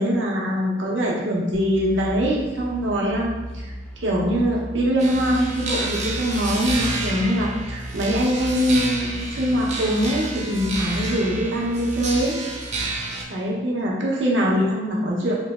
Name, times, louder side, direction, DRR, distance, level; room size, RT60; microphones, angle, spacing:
voice 1, 0.0-3.3 3.5-3.7 4.0-12.4 13.3-15.4, equal, 85° right, -3 dB, 0.8 m, -23 dB
sound 1, 1.5-12.2, equal, 5° left, 0.5 m, -36 dB
sound 2, 5.0-13.2, right 2 dB, 40° right, 0.6 m, -30 dB
3.1 x 3.0 x 3.5 m, 1.2 s
head